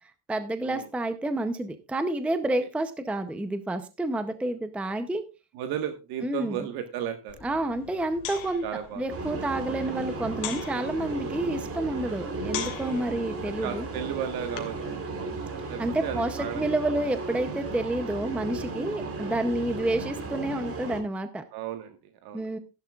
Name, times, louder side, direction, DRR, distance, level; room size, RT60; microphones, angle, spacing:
voice 1, 0.3-5.2 6.2-6.7 7.4-8.6 9.0-13.9 15.8-21.4 22.3-22.6, right 1 dB, 5° right, 9 dB, 0.6 m, -29 dB
voice 2, 5.5-7.4 8.6-9.1 9.4-9.5 12.8-13.1 13.5-15.0 15.7-16.6 21.5-22.6, right 10 dB, 65° right, 7 dB, 1.4 m, -35 dB
sound 1, 7.3-14.9, left 10 dB, 60° left, 2.8 m, -42 dB
sound 2, 9.1-21.0, right 3 dB, 35° right, 3.5 m, -35 dB
15.5 x 11.5 x 2.3 m, 0.28 s
cardioid pair, 180°, 40 cm